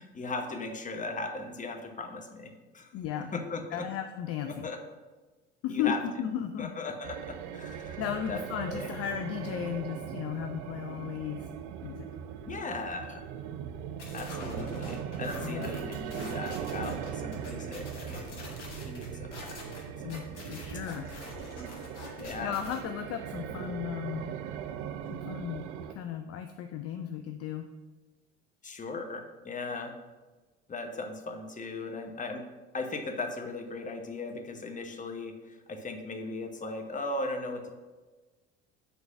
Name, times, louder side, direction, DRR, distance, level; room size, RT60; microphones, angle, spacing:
voice 1, 0.0-3.9 4.5-4.8 5.7-6.0 6.6-8.0 8.3-8.9 12.5-13.2 14.1-18.6 18.8-19.6 22.2-22.6 28.6-29.9 30.7-32.4 32.7-37.7, left 3 dB, 20° left, 4 dB, 1.1 m, -38 dB
voice 2, 2.9-3.3 3.7-4.7 5.6-6.7 8.0-11.5 11.8-12.1 15.4-15.7 20.0-21.1 22.4-24.3 25.1-25.7 25.9-27.7, left 9 dB, 45° left, 7 dB, 0.5 m, -35 dB
sound 1, 7.0-25.9, right 8 dB, 55° right, 0.6 m, -39 dB
sound 2, 14.0-22.8, left 2 dB, 80° left, 1.5 m, -46 dB
5.8 x 3.9 x 5.9 m, 1.2 s
hypercardioid pair, 65°, 34 cm